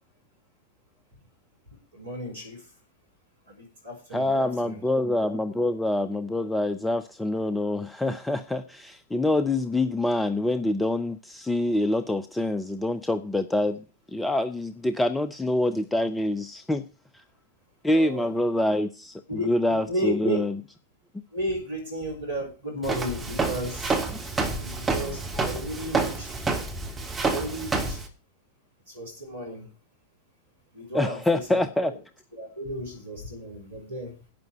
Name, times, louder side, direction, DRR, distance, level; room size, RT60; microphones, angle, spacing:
voice 1, 1.9-2.6 3.6-4.8 17.9-18.3 19.3-20.4 21.3-24.1 24.5-26.3 27.2-28.0 28.9-29.6 30.7-32.0 32.4-34.1, equal, 75° right, 2 dB, 4.1 m, -33 dB
voice 2, 4.1-16.8 17.1-17.2 17.8-20.6 24.1-24.2 30.9-31.9, left 1 dB, 5° left, 11 dB, 0.7 m, -26 dB
Walk footsteps, 22.8-28.1, right 3 dB, 10° right, 2.9 m, -28 dB
12.0 x 9.4 x 4.4 m, 0.34 s
figure-of-eight pair, 90°, 0 cm